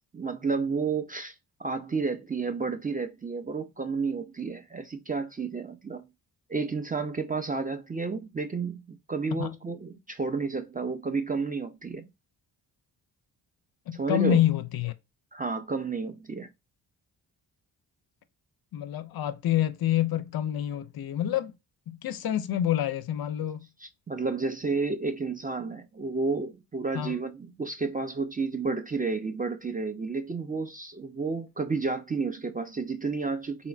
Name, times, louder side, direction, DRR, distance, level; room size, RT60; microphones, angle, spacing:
voice 1, 0.1-6.0 6.5-12.1 13.9-14.4 15.3-16.5 24.1-33.7, right 4 dB, 20° right, 0.4 m, -31 dB
voice 2, 13.9-14.9 18.7-21.5 21.9-23.7 26.9-27.2, left 11 dB, 55° left, 0.5 m, -27 dB
3.9 x 2.0 x 2.4 m
supercardioid pair, 50°, 47 cm